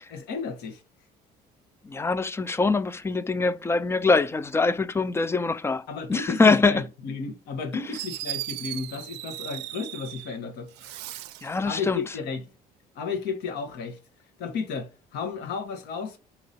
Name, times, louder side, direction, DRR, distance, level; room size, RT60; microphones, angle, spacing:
voice 1, 0.1-0.8 5.9-11.0 11.6-12.5 12.9-14.0 14.4-16.2, left 5 dB, 80° left, 1.2 m, -33 dB
voice 2, 1.8-6.8 11.4-12.0, left 3 dB, 15° left, 0.3 m, -23 dB
Fireworks, 7.5-7.6 7.9-10.4 10.7-11.6, right 15 dB, 90° right, 0.4 m, -37 dB
5.1 x 3.0 x 2.8 m
cardioid pair, 110°, 17 cm